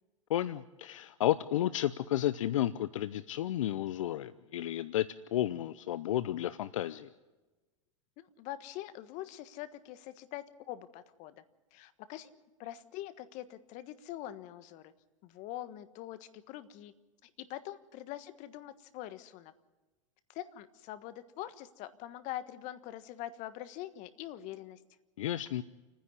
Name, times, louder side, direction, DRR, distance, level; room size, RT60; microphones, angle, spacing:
voice 1, 0.3-7.1 25.2-25.6, left 12 dB, 75° left, 15 dB, 0.7 m, -32 dB
voice 2, 8.2-11.4 11.7-12.3 12.6-14.9 15.2-16.9 17.2-19.5 20.3-24.8, left 13 dB, 50° left, 13 dB, 1.4 m, -44 dB
28.5 x 10.0 x 9.7 m, 1.2 s
hypercardioid pair, 105°, 16 cm